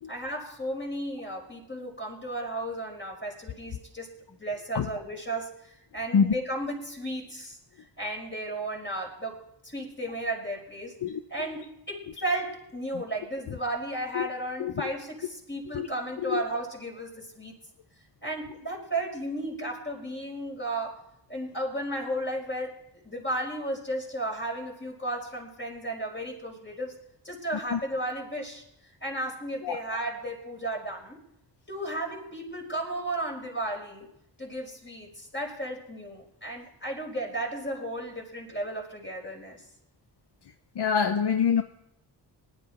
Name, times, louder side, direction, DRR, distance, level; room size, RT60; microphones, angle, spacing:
voice 1, 0.1-7.6 8.0-11.0 11.3-17.6 18.2-21.0 21.3-22.8 23.0-27.0 27.2-28.6 29.0-31.2 31.7-34.1 34.4-39.6, right 1 dB, 25° left, 5.2 m, -34 dB
voice 2, 40.8-41.6, left 7 dB, 60° left, 0.9 m, -25 dB
19.0 x 11.0 x 4.4 m
cardioid pair, 50°, 45 cm